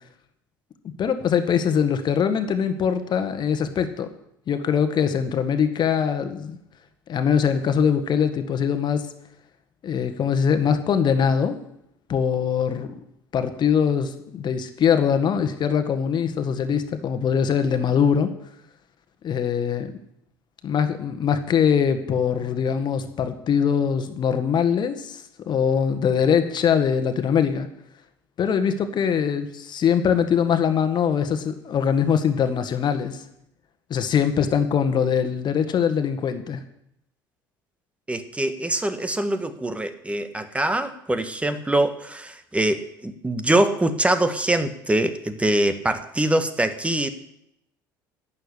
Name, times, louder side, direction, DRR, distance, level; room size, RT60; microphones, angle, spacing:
voice 1, 1.0-4.1 4.5-6.6 7.1-9.1 9.8-11.6 12.1-12.9 13.3-18.3 19.2-19.9 20.6-27.7 28.4-33.2 33.9-36.6, left 7 dB, 40° left, 9 dB, 1.7 m, -22 dB
voice 2, 38.1-47.1, right 1 dB, 10° right, 9 dB, 1.7 m, -23 dB
12.0 x 8.7 x 8.4 m, 0.76 s
figure-of-eight pair, 60°, 11 cm